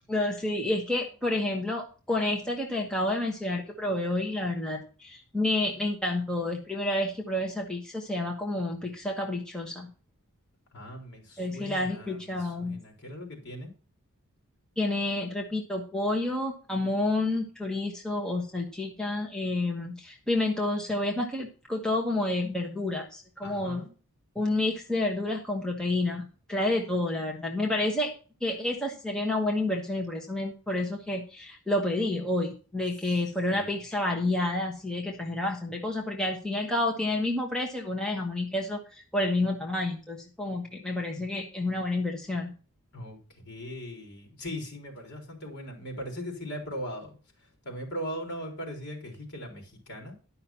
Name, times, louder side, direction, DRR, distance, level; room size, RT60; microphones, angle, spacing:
voice 1, 0.1-9.9 11.4-12.8 14.8-23.8 24.3-26.2 26.5-28.1 28.4-42.5, left 2 dB, 5° left, 0 dB, 1.3 m, -29 dB
voice 2, 10.7-13.7 23.4-23.9 33.4-33.8 42.9-50.1, equal, 50° left, 2 dB, 3.9 m, -39 dB
11.5 x 5.8 x 5.8 m, 0.36 s
head